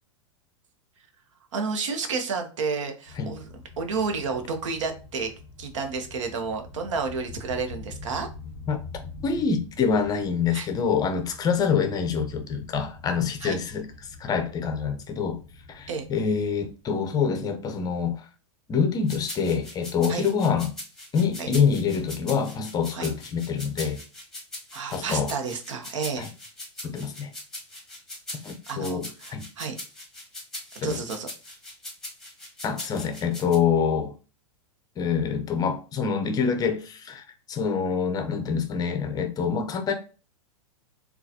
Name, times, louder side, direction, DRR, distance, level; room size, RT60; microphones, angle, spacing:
voice 1, 1.5-3.5 3.8-5.3 5.6-8.3 10.5-10.7 13.4-13.6 15.9-16.1 20.1-20.3 21.4-21.5 22.9-23.1 24.7-26.3 28.7-29.8 30.8-31.3, right 5 dB, 70° right, 0.8 m, -31 dB
sound 1, 3.1-16.9, left 3 dB, 50° right, 1.5 m, -45 dB
voice 2, 9.2-13.9 14.2-15.4 15.7-18.2 18.7-20.7 21.1-24.0 24.9-25.3 26.2-26.3 26.8-27.3 28.4-29.5 30.8-31.0 32.6-34.1 35.0-39.9, left 6 dB, 25° left, 0.6 m, -26 dB
sound 2, 19.1-33.6, left 1 dB, 5° left, 1.2 m, -40 dB
3.8 x 2.3 x 2.7 m
hypercardioid pair, 115°, 16 cm